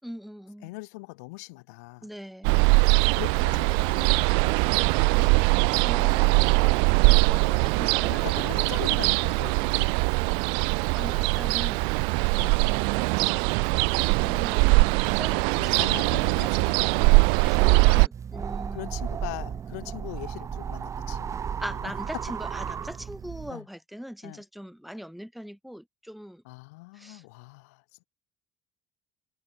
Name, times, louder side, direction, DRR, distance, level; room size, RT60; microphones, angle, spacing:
voice 1, 0.0-0.7 2.0-2.6 5.1-8.4 10.9-12.0 14.2-15.9 17.0-18.9 21.6-26.4 26.9-27.2, equal, ahead, 6.2 m, -41 dB
voice 2, 0.6-2.1 2.9-4.8 5.1-5.4 8.1-9.9 12.3-12.9 15.6-17.4 18.7-21.4 21.8-21.9 23.5-23.6 24.2-24.4 26.4-28.0, left 26 dB, 85° left, 3.5 m, -41 dB
Ocean, 2.4-18.1, right 36 dB, 80° right, 1.0 m, -22 dB
sound 1, 18.1-23.5, right 7 dB, 40° right, 1.3 m, -34 dB
supercardioid pair, 85°, 8 cm